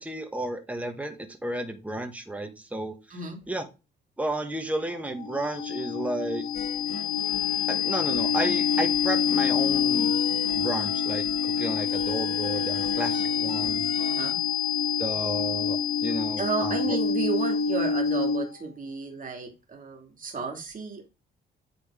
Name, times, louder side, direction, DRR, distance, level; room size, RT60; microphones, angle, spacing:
voice 1, 0.0-3.2 3.5-3.7 4.2-6.4 7.7-10.1 10.5-13.9 15.0-17.0, right 1 dB, 5° right, 6 dB, 1.4 m, -32 dB
sound 1, 4.8-18.7, left 6 dB, 80° left, 1.2 m, -27 dB
sound 2, 6.5-14.3, left 4 dB, 30° left, 1.9 m, -42 dB
voice 2, 14.0-14.4 16.4-21.1, right 5 dB, 40° right, 2 dB, 2.3 m, -33 dB
8.6 x 3.8 x 3.7 m, 0.28 s
cardioid pair, 90°, 20 cm